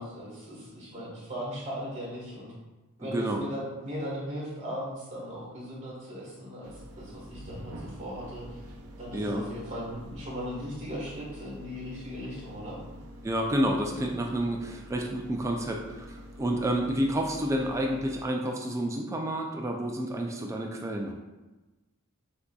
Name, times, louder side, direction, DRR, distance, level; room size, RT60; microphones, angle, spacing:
voice 1, 0.0-2.5 3.0-8.6 9.0-12.8, equal, 30° right, -4 dB, 1.4 m, -38 dB
voice 2, 3.0-3.4 9.1-9.4 13.2-21.1, right 1 dB, 15° right, 1 dB, 0.3 m, -29 dB
sound 1, 6.6-18.3, equal, 80° right, 0.5 m, -46 dB
6.1 x 2.7 x 2.3 m, 1.1 s
head